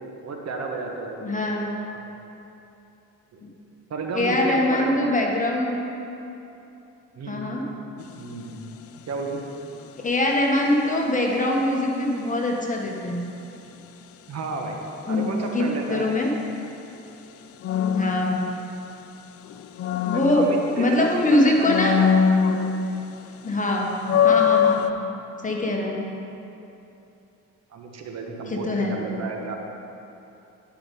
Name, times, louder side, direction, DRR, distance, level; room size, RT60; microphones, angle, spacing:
voice 1, 0.0-1.4 1.9-2.1 3.3-3.4 3.9-5.0 7.1-7.7 8.2-8.6 9.1-9.4 14.3-14.8 15.1-16.2 20.0-21.7 24.1-24.3 24.6-24.8 27.7-29.6, right 3 dB, 60° right, 2 dB, 1.1 m, -32 dB
voice 2, 1.2-1.7 3.4-3.6 4.1-5.8 7.3-7.7 10.0-13.2 15.1-16.3 17.9-18.6 20.0-22.0 23.4-23.9 24.2-24.9 25.4-26.1 28.5-29.0, left 1 dB, 25° left, 0 dB, 1.3 m, -23 dB
sound 1, 8.0-8.3 17.6-19.1 19.5-21.1 21.6-23.2 23.5-23.6 24.0-24.9, left 7 dB, 50° left, 0.4 m, -22 dB
10.5 x 5.2 x 5.3 m, 2.9 s
cardioid pair, 90°, 30 cm